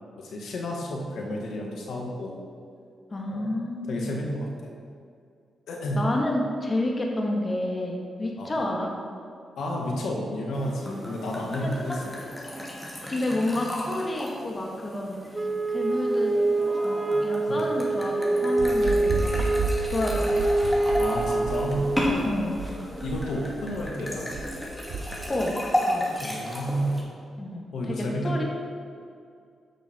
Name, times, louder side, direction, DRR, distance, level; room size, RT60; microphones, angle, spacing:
voice 1, 0.2-2.4 3.3-3.5 3.9-4.5 5.7-6.0 8.4-8.7 9.6-12.0 17.5-17.7 21.0-21.9 22.2-22.3 23.0-24.3 26.2-26.9 27.7-28.4, equal, 70° left, 0 dB, 1.7 m, -31 dB
voice 2, 3.1-4.2 6.0-8.9 11.6-12.0 13.1-15.4 15.7-16.4 17.2-19.5 19.8-20.3 22.2-22.6 25.3-25.6 25.9-26.1 27.4-28.4, left 1 dB, 35° left, 0 dB, 2.0 m, -29 dB
sound 1, 10.5-27.0, left 1 dB, 10° left, 2.4 m, -34 dB
Wind instrument woodwind instrument, 15.3-22.1, right 2 dB, 25° right, 0.6 m, -25 dB
sound 2, 18.6-25.4, right 3 dB, 80° right, 1.3 m, -32 dB
10.5 x 6.2 x 4.5 m, 2.3 s
supercardioid pair, 45°, 0 cm